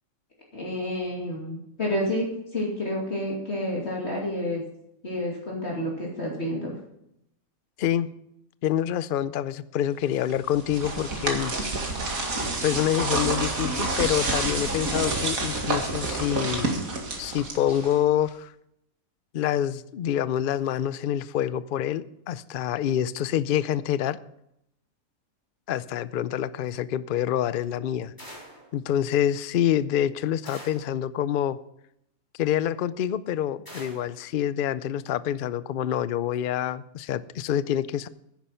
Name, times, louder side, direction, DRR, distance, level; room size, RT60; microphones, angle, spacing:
voice 1, 0.5-4.6 5.0-6.7, left 1 dB, 50° left, -3 dB, 2.8 m, -29 dB
voice 2, 8.6-11.5 12.5-16.7 17.2-18.5 19.3-24.2 25.7-28.1 28.7-31.6 32.3-38.1, left 10 dB, 70° left, 16 dB, 0.5 m, -26 dB
sound 1, 10.3-18.1, right 2 dB, 70° right, 2.5 m, -28 dB
sound 2, 28.2-28.7 30.4-31.0 33.6-34.2, equal, 15° left, 3.6 m, -44 dB
10.5 x 10.0 x 5.6 m, 0.78 s
omnidirectional pair, 1.5 m